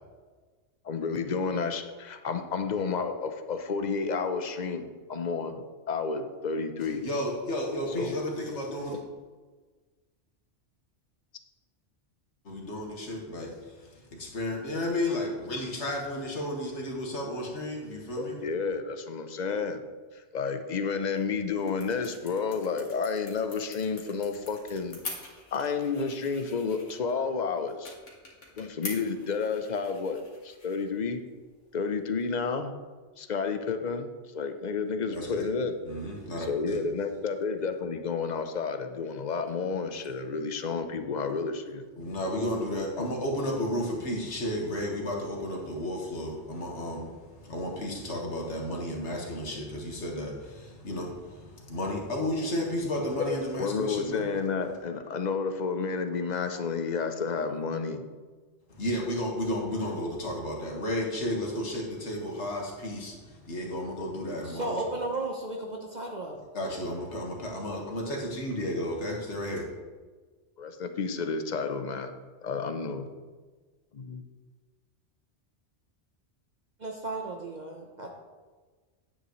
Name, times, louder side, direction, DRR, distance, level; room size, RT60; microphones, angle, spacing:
voice 1, 0.8-4.8 5.1-7.0 8.0-8.1 18.2-19.8 20.1-25.0 25.5-27.9 28.6-31.2 31.7-32.7 33.2-34.1 34.3-35.7 36.4-41.8 43.0-43.1 53.3-58.0 70.6-72.1 72.4-73.1 74.0-74.2, left 5 dB, 45° left, 8 dB, 0.7 m, -31 dB
voice 2, 7.0-9.0 12.5-18.4 35.1-35.4 35.9-36.8 42.0-54.2 58.7-64.8 66.5-69.7, left 1 dB, 75° left, 0 dB, 1.9 m, -33 dB
sound 1, 21.0-32.5, left 3 dB, 90° left, 2.0 m, -47 dB
voice 3, 64.4-66.4 76.8-78.1, right 2 dB, 40° right, 1 dB, 0.8 m, -34 dB
9.7 x 8.3 x 3.1 m, 1.4 s
omnidirectional pair, 1.2 m